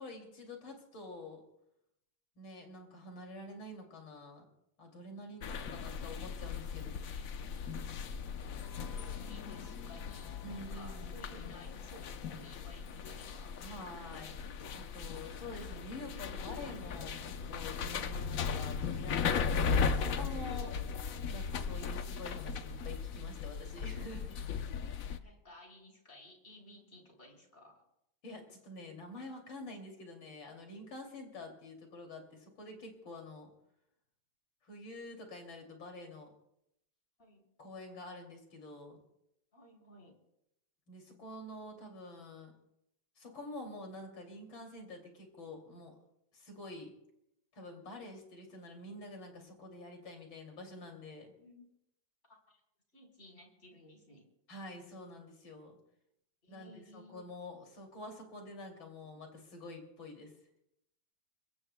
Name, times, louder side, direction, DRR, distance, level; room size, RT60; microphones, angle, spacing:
voice 1, 0.0-1.4 2.4-4.4 4.8-6.9 10.4-11.2 13.6-14.4 14.7-20.8 21.3-24.4 25.2-25.3 28.2-33.5 34.6-36.3 37.6-39.0 40.9-42.5 43.2-45.9 46.3-46.9 47.5-51.3 54.5-55.8 56.5-60.3, left 2 dB, 85° left, 2 dB, 3.5 m, -47 dB
voice 2, 5.1-5.5 8.6-13.6 17.9-18.4 25.1-27.8 29.5-29.6 31.3-31.4 37.2-37.4 39.5-40.2 51.4-51.6 52.3-52.6 52.9-54.2 56.4-57.2, left 1 dB, 35° left, 0 dB, 4.1 m, -57 dB
sound 1, 5.4-25.2, left 6 dB, 60° left, 1.0 m, -37 dB
25.5 x 22.0 x 2.2 m, 0.81 s
omnidirectional pair, 2.1 m